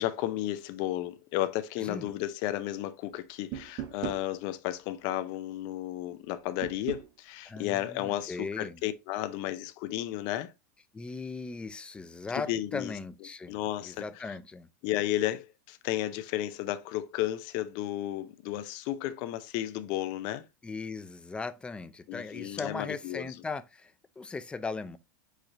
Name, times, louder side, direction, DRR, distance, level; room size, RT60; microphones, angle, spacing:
voice 1, 0.0-10.5 12.5-12.9 13.5-14.0 14.8-20.4 22.1-23.3, left 14 dB, 50° left, 0.6 m, -33 dB
voice 2, 1.8-2.1 7.4-8.8 10.9-14.7 20.6-25.0, left 4 dB, 10° left, 0.4 m, -38 dB
sound 1, 3.5-4.3 6.6-7.1, right 11 dB, 45° right, 0.7 m, -37 dB
4.8 x 2.5 x 4.2 m
supercardioid pair, 125°, 10 cm